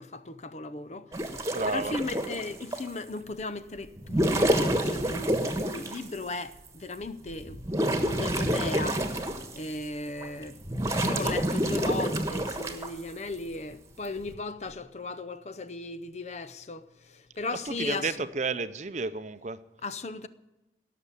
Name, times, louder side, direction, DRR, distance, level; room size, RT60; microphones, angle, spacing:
voice 1, 0.0-7.6 7.9-9.0 9.5-10.6 11.0-18.2 19.8-20.3, left 3 dB, 40° left, 0.7 m, -37 dB
sound 1, 1.1-2.9 4.0-6.1 6.7-6.8 7.3-9.8 10.2-12.9 14.0-14.3, right 1 dB, 15° right, 1.4 m, -28 dB
voice 2, 1.5-2.0 17.7-19.6, right 4 dB, 40° right, 0.7 m, -32 dB
17.5 x 6.8 x 10.0 m
head